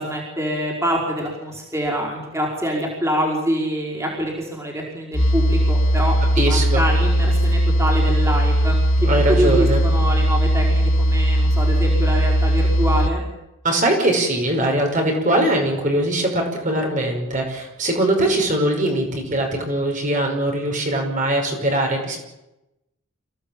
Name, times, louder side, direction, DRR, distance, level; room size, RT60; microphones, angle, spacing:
voice 1, 0.0-13.2, equal, 15° right, -1 dB, 5.1 m, -25 dB
sound 1, 5.1-13.1, equal, 60° left, 2.2 m, -18 dB
voice 2, 6.4-6.8 9.0-9.8 13.6-22.2, right 1 dB, 35° right, 2 dB, 5.6 m, -21 dB
27.0 x 17.0 x 8.9 m, 0.93 s
head